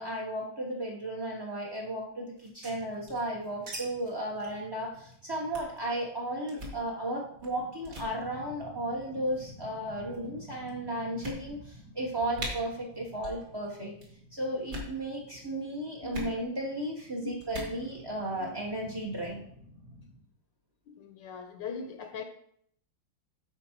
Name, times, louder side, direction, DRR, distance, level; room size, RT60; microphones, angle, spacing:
voice 1, 0.0-13.9 14.3-19.4, right 1 dB, 20° right, 0.6 m, -34 dB
sound 1, 2.4-3.8 4.0-4.1 4.4-4.6 4.9-5.1 5.5-5.8 6.5-6.8 7.4-7.6 7.8-8.1 9.0-9.4 10.1-10.2 10.7-10.8 11.2-11.8 12.0-12.1 12.3-12.5 13.2-13.4 13.7-14.1 14.6-14.9 16.1-16.3 17.4-17.7, equal, 55° right, 2.6 m, -40 dB
sound 2, 2.6-20.2, left 1 dB, 75° right, 3.0 m, -52 dB
voice 2, 15.2-15.7 16.0-16.3 17.2-17.3 18.4-18.6 20.9-22.2, left 6 dB, 70° left, 1.3 m, -41 dB
11.0 x 4.4 x 4.5 m
omnidirectional pair, 2.2 m